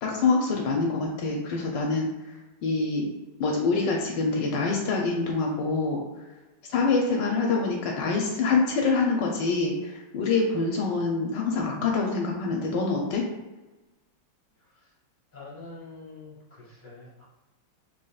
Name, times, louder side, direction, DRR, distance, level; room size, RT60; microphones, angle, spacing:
voice 1, 0.0-2.4 2.6-3.1 3.4-6.0 6.7-13.2, left 4 dB, 75° left, 0 dB, 1.2 m, -25 dB
voice 2, 14.6-14.9 15.3-17.2, left 3 dB, 10° left, -6 dB, 0.9 m, -46 dB
4.1 x 3.2 x 2.3 m, 1.1 s
omnidirectional pair, 2.1 m